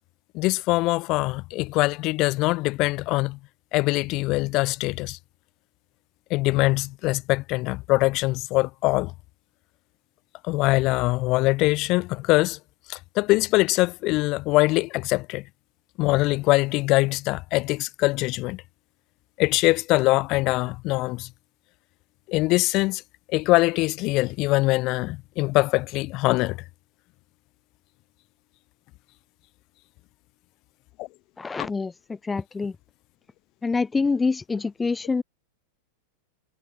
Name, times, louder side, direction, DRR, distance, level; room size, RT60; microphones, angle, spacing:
voice 1, 0.3-3.4 3.7-5.2 6.3-9.1 10.5-12.6 12.9-15.4 16.0-18.6 19.4-21.3 22.3-23.0 23.3-26.6 31.0-31.1 31.6-31.7, left 21 dB, 40° left, 0.8 m, -23 dB
voice 2, 31.4-31.9 32.2-32.7 33.6-35.2, left 4 dB, 10° left, 0.3 m, -25 dB
figure-of-eight pair, 90°, 0 cm